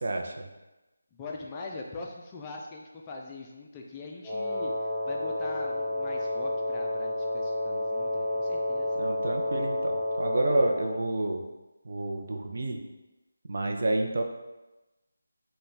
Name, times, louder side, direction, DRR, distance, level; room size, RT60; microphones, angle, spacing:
voice 1, 0.0-0.5 9.0-11.4 11.8-12.8 13.4-14.2, right 2 dB, 55° right, 3 dB, 0.5 m, -29 dB
voice 2, 1.1-9.0, left 3 dB, 15° left, -1 dB, 0.3 m, -42 dB
Wind instrument woodwind instrument, 4.2-11.0, left 1 dB, ahead, 0.8 m, -30 dB
4.3 x 2.2 x 3.2 m, 1.0 s
figure-of-eight pair, 165°, 0 cm